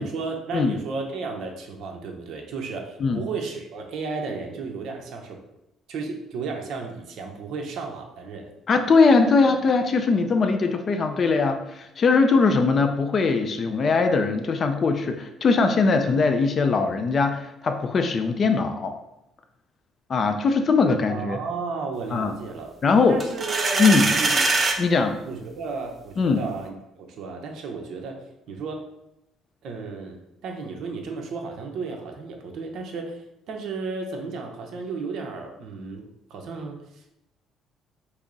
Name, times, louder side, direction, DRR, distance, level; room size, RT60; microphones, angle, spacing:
voice 1, 0.0-5.4 5.9-8.5 21.1-22.7 23.1-24.5 25.2-28.8 29.6-33.2 33.5-36.8, right 4 dB, 60° right, 2 dB, 0.8 m, -33 dB
voice 2, 8.7-18.9 20.1-21.4 22.1-22.3 22.8-23.2 23.8-24.1 24.8-25.2 26.2-26.4, left 4 dB, 35° left, 7 dB, 0.4 m, -21 dB
sound 1, 23.2-24.8, right 3 dB, 25° right, 0.4 m, -22 dB
5.8 x 2.0 x 3.9 m, 0.86 s
cardioid pair, 155°, 0 cm